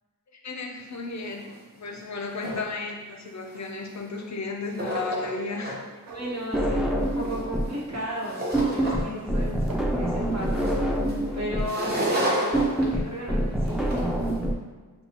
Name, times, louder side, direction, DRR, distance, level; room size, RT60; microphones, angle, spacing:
voice 1, 0.3-1.4 1.7-5.8, left 3 dB, 55° left, 2 dB, 0.5 m, -34 dB
sound 1, 0.9-1.0 1.2-1.5 1.9-2.8 3.5-4.3 4.6-5.8 6.2-9.3 9.6-14.4, right 1 dB, 30° right, 0.9 m, -32 dB
voice 2, 6.1-11.0 11.3-13.9, equal, 50° right, -5 dB, 1.2 m, -35 dB
sound 2, 6.1-7.6 7.9-8.4 9.7-9.8, right 2 dB, 80° right, 0.6 m, -44 dB
sound 3, 6.5-7.8 8.1-14.5, right 1 dB, ahead, 0.3 m, -26 dB
5.5 x 2.3 x 2.9 m, 1.4 s
wide cardioid pair, 105°, 34 cm